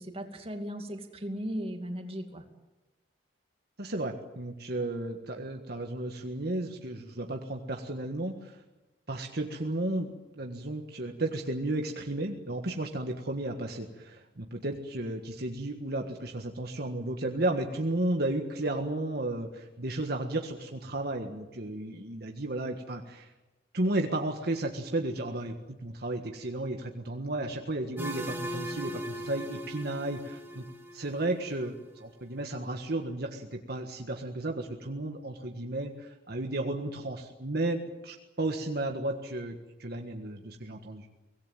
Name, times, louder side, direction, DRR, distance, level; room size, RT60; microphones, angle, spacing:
voice 1, 0.0-2.4, equal, 30° right, 5 dB, 2.6 m, -37 dB
voice 2, 3.8-8.6 9.1-23.3 23.7-30.6 30.9-41.1, right 2 dB, 55° right, 3 dB, 1.6 m, -33 dB
sound 1, 28.0-31.7, equal, 10° right, 3.2 m, -39 dB
24.5 x 18.0 x 9.2 m, 1.0 s
head